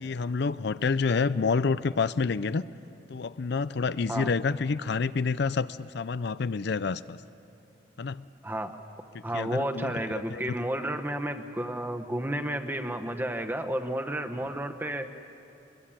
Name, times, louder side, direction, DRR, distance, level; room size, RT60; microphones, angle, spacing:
voice 1, 0.0-2.6 3.1-7.2 8.0-8.2 9.3-9.9 10.3-10.6, left 4 dB, 60° left, 15 dB, 0.5 m, -28 dB
voice 2, 8.4-8.8 9.2-15.1, right 1 dB, 10° right, 6 dB, 1.2 m, -31 dB
22.5 x 22.0 x 8.9 m, 2.8 s
head